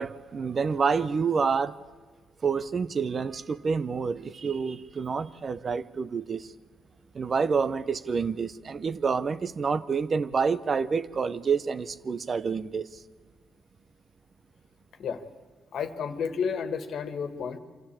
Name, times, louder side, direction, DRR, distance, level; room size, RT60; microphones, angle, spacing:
voice 1, 0.0-1.8 2.4-6.5 7.1-12.9, right 5 dB, 40° right, 0.7 m, -28 dB
voice 2, 15.7-17.6, left 6 dB, 65° left, 1.7 m, -31 dB
25.5 x 13.5 x 8.6 m
cardioid pair, 90°, 0 cm